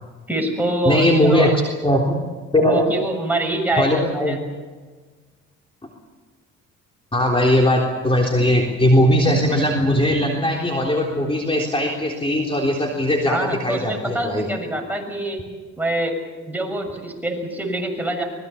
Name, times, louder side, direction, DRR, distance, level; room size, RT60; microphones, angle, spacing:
voice 1, 0.3-1.5 1.9-2.0 2.6-4.4 13.3-15.4 15.8-16.1 16.5-18.2, right 1 dB, 5° right, 2 dB, 6.8 m, -25 dB
voice 2, 0.9-1.5 1.8-2.1 2.5-2.9 3.8-4.4 7.1-14.5, left 1 dB, 20° left, 0 dB, 3.6 m, -19 dB
25.0 x 21.0 x 7.1 m, 1.4 s
cardioid pair, 90°, 30 cm